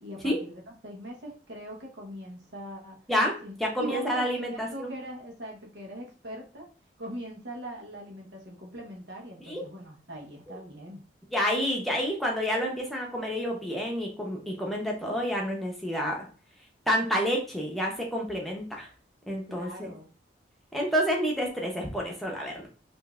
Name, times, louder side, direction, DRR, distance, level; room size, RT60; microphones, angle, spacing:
voice 1, 0.0-3.0 3.4-3.5 3.8-6.7 7.0-11.0 19.5-20.1, equal, 75° right, 0 dB, 1.1 m, -41 dB
voice 2, 3.6-4.9 9.5-9.6 10.5-10.6 11.3-16.2 16.9-18.9 19.3-19.9 20.7-22.7, equal, ahead, -2 dB, 0.8 m, -29 dB
5.1 x 2.6 x 2.4 m, 0.38 s
head